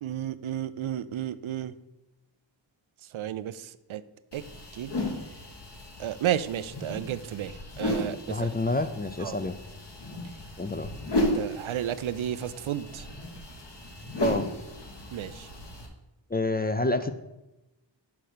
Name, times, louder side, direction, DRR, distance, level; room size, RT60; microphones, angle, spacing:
voice 1, 0.0-1.7 3.1-3.5 3.9-4.0 4.3-4.4 4.8-4.9 6.0-7.5 7.8-8.2 9.2-9.3 11.2-13.0 15.1-15.3, right 11 dB, 85° right, 14 dB, 0.5 m, -32 dB
sound 1, 4.3-15.9, left 1 dB, 60° left, 1.4 m, -35 dB
voice 2, 8.3-9.6 10.6-10.9 14.2-14.5 16.3-17.1, left 2 dB, 25° left, 10 dB, 0.3 m, -28 dB
5.9 x 5.3 x 6.6 m, 0.98 s
wide cardioid pair, 110°, 47 cm